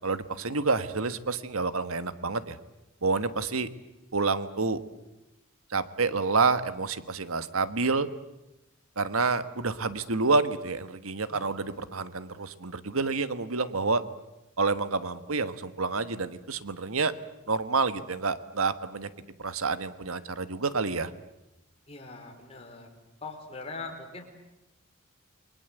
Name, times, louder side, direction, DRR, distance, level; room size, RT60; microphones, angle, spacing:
voice 1, 0.0-2.6 3.0-3.7 4.1-4.8 5.7-8.1 9.0-14.0 14.6-17.1 17.5-19.1 19.4-21.1, right 4 dB, 85° right, 12 dB, 1.4 m, -28 dB
voice 2, 11.3-11.8 21.9-22.9 23.2-24.2, left 3 dB, 30° left, 2 dB, 4.8 m, -42 dB
29.0 x 23.5 x 8.1 m, 0.97 s
head